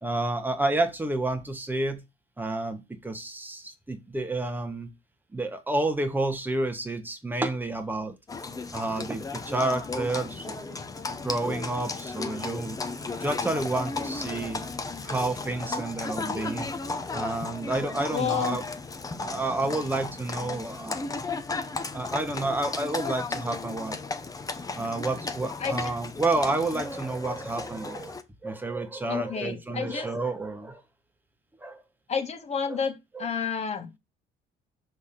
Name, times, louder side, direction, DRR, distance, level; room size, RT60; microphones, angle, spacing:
voice 1, 0.0-2.0 2.4-4.9 5.3-8.1 8.7-10.8 11.2-12.8 13.2-14.6 15.0-16.7 17.1-18.6 19.2-21.1 21.9-24.0 24.7-30.8 31.6-31.8 32.7-32.8 33.1-33.3, right 2 dB, 10° right, 1.3 m, -30 dB
Livestock farm animals working animals, 8.3-28.2, left 3 dB, 20° left, 0.8 m, -35 dB
voice 2, 18.1-18.6 25.6-25.9 29.1-30.1 32.1-34.0, left 7 dB, 40° left, 1.6 m, -30 dB
6.3 x 3.5 x 5.8 m
cardioid pair, 110°, 17 cm